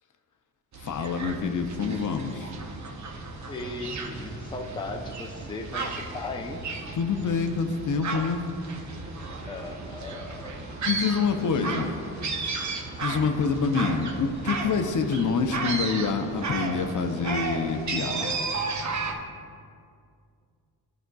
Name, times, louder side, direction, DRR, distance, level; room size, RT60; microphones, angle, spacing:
sound 1, 0.7-19.1, right 4 dB, 45° right, 0.8 m, -34 dB
voice 1, 0.8-2.5 6.9-8.4 10.9-11.9 13.0-18.3, left 5 dB, 50° left, 6 dB, 0.6 m, -26 dB
sound 2, 2.0-19.2, equal, 30° right, 1.7 m, -44 dB
voice 2, 3.5-6.6 9.5-10.8 11.4-11.5 11.7-12.3 13.1-13.4, left 2 dB, 15° left, 3 dB, 0.5 m, -38 dB
12.5 x 5.1 x 2.3 m, 2.3 s
cardioid pair, 65°, 38 cm